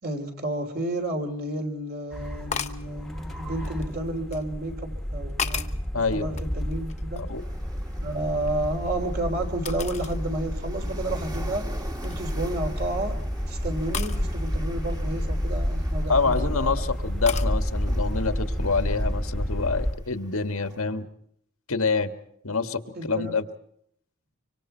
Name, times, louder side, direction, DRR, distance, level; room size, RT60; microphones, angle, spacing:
voice 1, 0.0-5.7 5.9-7.3 8.0-13.2 13.5-16.9 22.5-22.6 22.9-23.4, right 1 dB, 45° right, 5 dB, 3.3 m, -31 dB
sound 1, 1.0-1.1 2.5-2.9 3.6-4.4 5.0-5.9 6.3-7.4 7.7-9.0 9.7-10.2 10.7-10.8 11.4-11.6 12.0-12.4 13.9-14.2 15.9-16.4 17.3-17.5, left 7 dB, 30° left, 1.1 m, -35 dB
sound 2, 2.1-19.9, equal, ahead, 1.5 m, -30 dB
voice 2, 5.9-6.4 7.3-7.4 16.1-21.1 21.7-22.1 22.4-23.4, left 4 dB, 80° left, 8 dB, 1.5 m, -26 dB
sound 3, 7.3-20.8, right 1 dB, 20° right, 1.9 m, -46 dB
25.0 x 25.0 x 4.5 m, 0.71 s
head